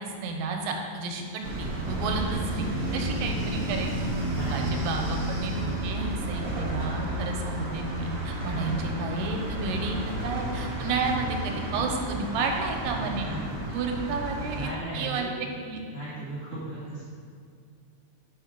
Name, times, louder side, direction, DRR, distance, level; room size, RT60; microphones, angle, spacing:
voice 1, 0.0-2.7 2.9-3.9 4.5-5.5 5.8-10.0 10.2-13.3 13.7-14.7 14.9-15.9, right 4 dB, 85° right, 2 dB, 2.4 m, -31 dB
sound 1, 1.4-14.7, right 1 dB, 50° right, 1.5 m, -31 dB
voice 2, 2.6-3.0 4.3-5.0 5.5-5.9 13.1-13.5 14.5-15.3 15.9-17.0, right 1 dB, 30° right, -9 dB, 1.5 m, -37 dB
5.5 x 4.9 x 5.8 m, 2.2 s
omnidirectional pair, 3.9 m